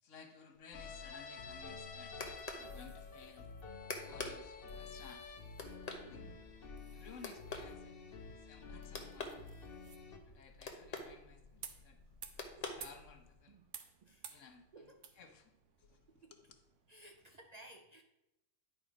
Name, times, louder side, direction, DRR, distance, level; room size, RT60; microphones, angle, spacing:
voice 1, 0.0-2.2 2.5-3.5 4.0-5.3 5.9-6.3 6.9-8.0 8.3-9.4 10.2-12.0 12.5-13.6 14.3-14.9 15.1-15.5 15.8-16.6, left 6 dB, 80° left, 6 dB, 1.3 m, -58 dB
sound 1, 0.5-17.4, right 7 dB, 80° right, 1.1 m, -59 dB
sound 2, 0.7-10.2, left 4 dB, 50° left, 1.1 m, -50 dB
sound 3, 1.5-13.4, left 3 dB, 35° left, 0.9 m, -49 dB
voice 2, 6.0-6.4 7.1-7.2 13.5-13.7 14.0-14.4 14.7-15.0 16.2-16.3 16.9-18.0, right 2 dB, 50° right, 4 dB, 0.5 m, -58 dB
10.0 x 4.3 x 5.0 m, 0.91 s
omnidirectional pair, 1.3 m